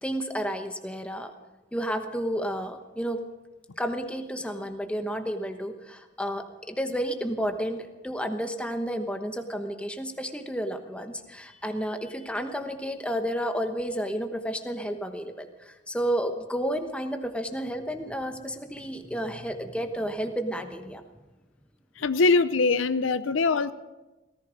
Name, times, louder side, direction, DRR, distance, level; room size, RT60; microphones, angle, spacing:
voice 1, 0.0-1.3 1.7-3.2 3.8-21.1, equal, 5° left, 1.1 m, -31 dB
voice 2, 22.0-23.7, left 3 dB, 90° left, 0.6 m, -22 dB
17.5 x 14.5 x 5.2 m
head